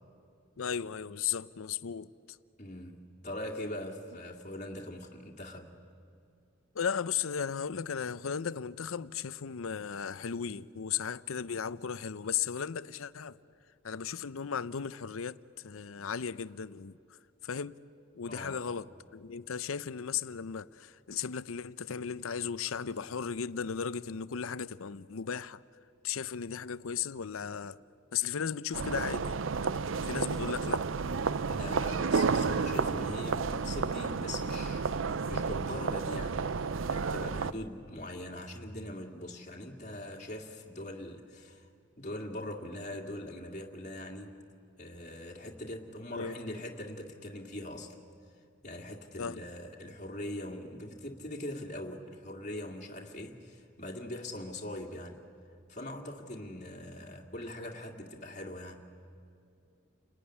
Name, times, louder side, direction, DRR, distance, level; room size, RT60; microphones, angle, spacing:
voice 1, 0.6-2.4 6.7-13.4 13.8-17.0 17.4-17.8 18.1-18.9 19.1-25.6 26.0-27.8 28.1-29.4 30.0-30.9 46.1-46.6 49.2-49.4, left 7 dB, 85° left, 0.6 m, -36 dB
voice 2, 2.6-5.8 18.3-18.6 31.5-34.9 35.3-36.5 36.9-41.7 42.0-44.4 44.8-48.0 48.6-55.2 55.7-58.9, left 1 dB, 35° left, 2.1 m, -42 dB
sound 1, 28.7-37.5, right 5 dB, 70° right, 0.6 m, -31 dB
30.0 x 20.0 x 9.9 m
head